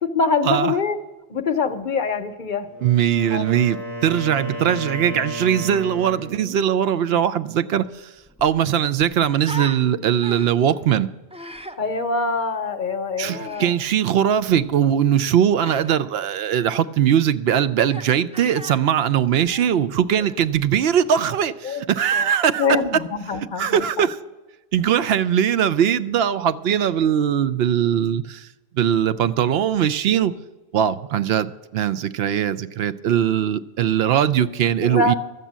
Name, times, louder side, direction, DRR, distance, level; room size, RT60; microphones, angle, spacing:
voice 1, 0.0-1.0 1.3-2.7 3.3-3.6 7.0-7.2 11.8-13.7 21.6-21.8 22.1-22.3 22.6-24.1 34.8-35.1, left 4 dB, 50° left, 0.8 m, -24 dB
Wind instrument woodwind instrument, 2.6-6.5, equal, 90° right, 4.4 m, -33 dB
voice 2, 2.8-7.9 8.4-11.1 13.2-22.7 23.6-24.2 24.7-28.5 28.7-30.3 30.7-35.1, right 9 dB, 70° right, 0.8 m, -20 dB
Human voice, 7.8-7.9 8.2-9.8 10.2-10.7 11.3-11.8 13.3-13.8 15.6-16.0 16.6-16.9 17.8-18.1 18.3-18.8 19.4-20.5, right 1 dB, 10° right, 0.4 m, -37 dB
12.5 x 8.0 x 7.4 m
omnidirectional pair, 1.1 m